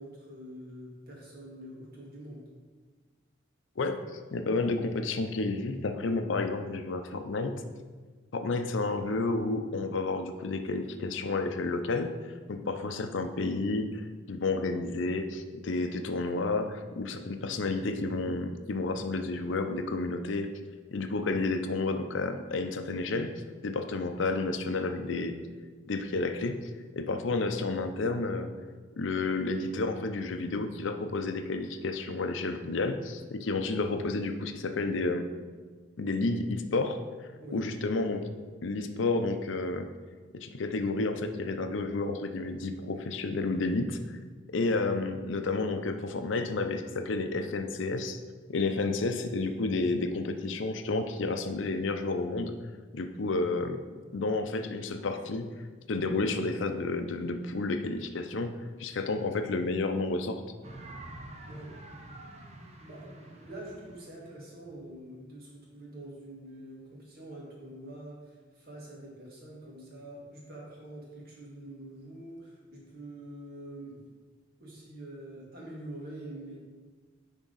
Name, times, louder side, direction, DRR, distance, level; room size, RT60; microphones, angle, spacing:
voice 1, 0.0-2.4 37.4-37.7 61.5-61.7 62.8-74.1 74.6-76.6, right 1 dB, 50° right, -3 dB, 1.9 m, -45 dB
voice 2, 3.8-7.6 8.3-12.1 12.5-20.5 20.9-23.3 23.6-25.4 25.9-28.5 29.0-35.3 36.0-38.3 38.6-39.9 40.3-44.2 44.5-48.2 48.5-52.6 52.9-53.8 54.1-55.5 55.9-60.4, left 3 dB, 70° left, 6 dB, 0.5 m, -31 dB
sound 1, 60.6-65.5, right 1 dB, 35° right, 0.7 m, -48 dB
9.8 x 3.6 x 4.0 m, 1.5 s
head